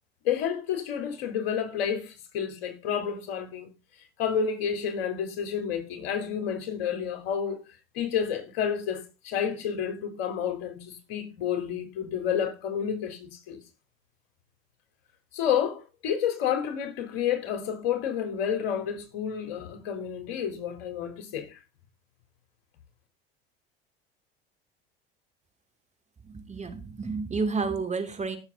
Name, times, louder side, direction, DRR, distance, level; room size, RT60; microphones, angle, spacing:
voice 1, 0.2-3.7 4.2-7.6 7.9-13.6 15.3-21.6, left 8 dB, 70° left, 3.8 m, -30 dB
voice 2, 26.2-28.4, right 4 dB, 25° right, 2.8 m, -30 dB
17.0 x 7.2 x 4.0 m
hypercardioid pair, 80°, 30 cm